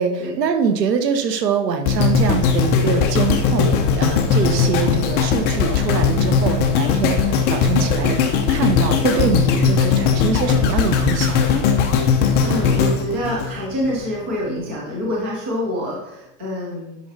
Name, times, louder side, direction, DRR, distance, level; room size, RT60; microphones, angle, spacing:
voice 1, 0.0-8.2 8.5-11.7, right 6 dB, 85° right, 6 dB, 1.6 m, -23 dB
sound 1, 1.9-14.1 14.6-14.7, left 6 dB, 20° left, 0.8 m, -18 dB
voice 2, 12.2-17.0, equal, 10° right, -4 dB, 0.3 m, -26 dB
11.0 x 5.9 x 4.0 m, 0.89 s
supercardioid pair, 160°, 47 cm